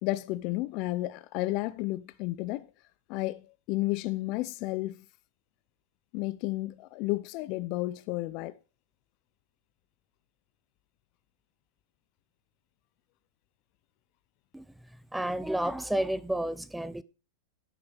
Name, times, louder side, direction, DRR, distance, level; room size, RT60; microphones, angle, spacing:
voice 1, 0.0-2.7 3.1-5.0 6.1-8.5, left 19 dB, 50° left, 0.5 m, -32 dB
voice 2, 15.1-17.0, right 1 dB, 5° right, 0.5 m, -31 dB
10.5 x 5.7 x 5.0 m
hypercardioid pair, 115°, 0 cm